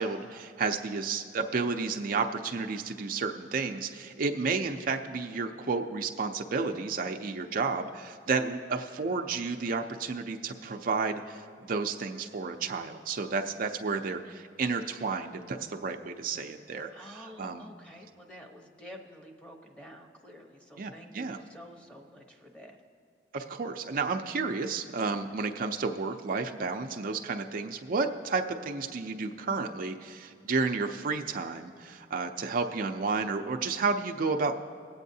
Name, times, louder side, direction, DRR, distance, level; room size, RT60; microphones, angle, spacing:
voice 1, 0.0-17.7 20.8-21.4 23.3-34.5, right 4 dB, 50° right, 4 dB, 0.5 m, -31 dB
voice 2, 16.9-22.8, equal, 5° left, 2 dB, 0.9 m, -49 dB
20.0 x 8.3 x 2.7 m, 2.3 s
head